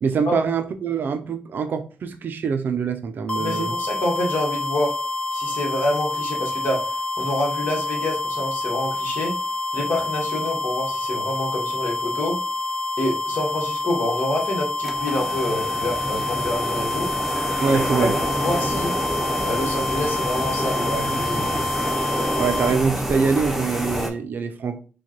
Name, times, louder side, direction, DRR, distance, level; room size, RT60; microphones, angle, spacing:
voice 1, 0.0-3.8 17.6-18.2 22.4-24.8, right 5 dB, 65° right, 0.4 m, -24 dB
voice 2, 3.3-4.9 5.3-9.3 9.7-12.4 13.0-17.1 17.7-18.9 19.4-21.6, left 1 dB, 70° left, 1.2 m, -27 dB
sound 1, 3.3-22.8, left 2 dB, 30° left, 0.7 m, -27 dB
sound 2, 14.8-24.1, equal, 5° right, 0.7 m, -27 dB
4.5 x 2.2 x 2.9 m
cardioid pair, 105°, 4 cm